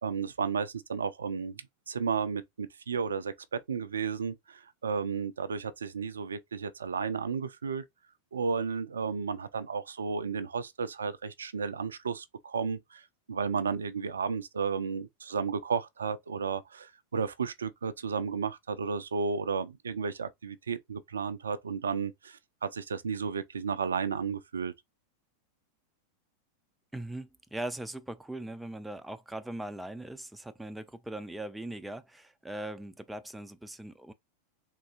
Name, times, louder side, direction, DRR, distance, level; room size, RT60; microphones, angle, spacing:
voice 1, 0.0-7.8 8.3-13.0 13.3-24.7, right 5 dB, 70° right, 0.4 m, -33 dB
voice 2, 26.9-34.1, right 1 dB, 5° right, 0.4 m, -40 dB
3.7 x 2.6 x 2.4 m
figure-of-eight pair, 90°, 0 cm